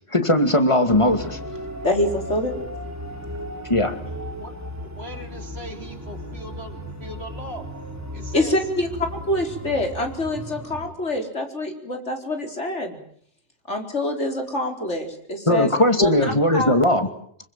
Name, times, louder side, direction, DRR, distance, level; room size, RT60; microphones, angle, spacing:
voice 1, 0.1-1.4 3.7-4.0 15.5-17.1, left 1 dB, 25° left, 7 dB, 2.5 m, -19 dB
sound 1, 0.9-10.9, equal, 15° right, 4.0 m, -35 dB
voice 2, 1.8-2.5 8.3-13.0 13.7-15.7 16.0-16.1 16.5-16.7, left 1 dB, 75° left, 3 dB, 4.7 m, -25 dB
voice 3, 4.0-7.7 8.1-8.6 16.9-17.2, right 1 dB, 60° right, 4 dB, 4.0 m, -39 dB
26.5 x 24.0 x 7.6 m, 0.62 s
omnidirectional pair, 1.2 m